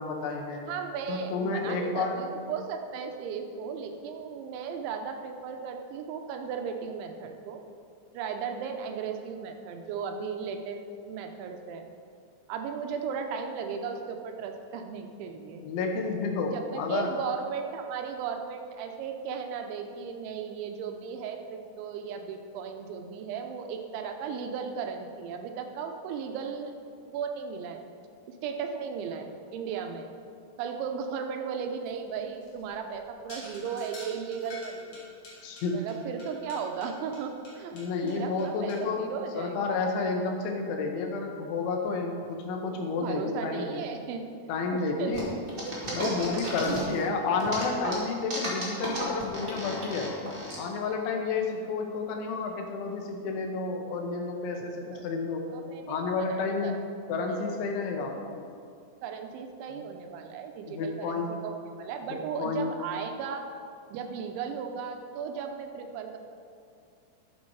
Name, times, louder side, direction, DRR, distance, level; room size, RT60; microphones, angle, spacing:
voice 1, 0.0-0.7 1.1-2.3 15.6-17.1 35.4-35.8 37.7-43.8 44.5-45.3 45.9-50.1 50.6-55.5 55.9-56.8 57.1-58.1 59.7-59.8 60.7-61.4 62.1-62.7, left 4 dB, 90° left, 2 dB, 3.5 m, -31 dB
voice 2, 0.7-7.6 8.1-10.8 11.1-11.9 12.5-15.6 16.5-26.7 27.1-27.8 28.3-30.1 30.6-35.0 35.7-37.8 38.0-39.6 43.0-44.3 44.7-45.3 45.6-46.9 54.5-54.6 54.9-55.1 55.5-56.9 57.3-57.4 59.0-63.4 63.9-66.2, right 6 dB, 85° right, 5 dB, 3.2 m, -36 dB
sound 1, 31.8-38.8, left 1 dB, 40° left, 2.3 m, -48 dB
sound 2, 45.1-47.0 47.4-50.6, equal, 30° right, 0.9 m, -34 dB
11.5 x 8.0 x 4.8 m, 2.4 s
omnidirectional pair, 5.2 m